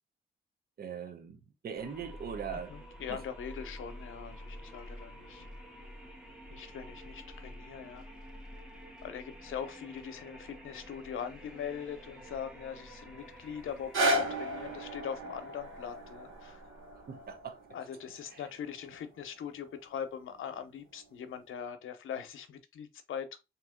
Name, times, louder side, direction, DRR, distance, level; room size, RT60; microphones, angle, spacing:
voice 1, 0.8-1.4 1.6-2.7 3.1-3.2 17.1-17.6, right 7 dB, 50° right, 0.8 m, -40 dB
sound 1, 1.8-17.7, equal, 5° right, 1.0 m, -49 dB
voice 2, 2.5-5.5 6.5-8.1 9.0-16.6 17.7-23.4, left 8 dB, 75° left, 0.7 m, -41 dB
sound 2, 13.7-19.8 20.4-20.5, right 1 dB, 75° right, 1.5 m, -35 dB
3.7 x 2.9 x 3.5 m
cardioid pair, 125°, 21 cm